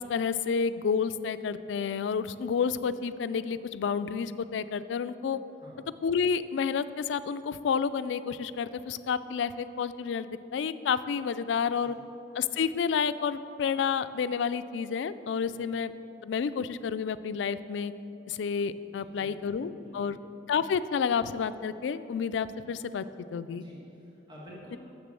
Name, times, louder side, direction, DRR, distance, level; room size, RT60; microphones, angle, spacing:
voice 1, 0.0-5.4 6.0-11.9 12.4-15.9 16.2-17.9 18.3-20.2 20.5-23.1 23.3-23.6, left 6 dB, 80° left, 14 dB, 0.3 m, -30 dB
voice 2, 18.9-20.2 23.5-24.8, equal, 25° right, -5 dB, 1.5 m, -50 dB
6.9 x 6.6 x 7.5 m, 2.9 s
head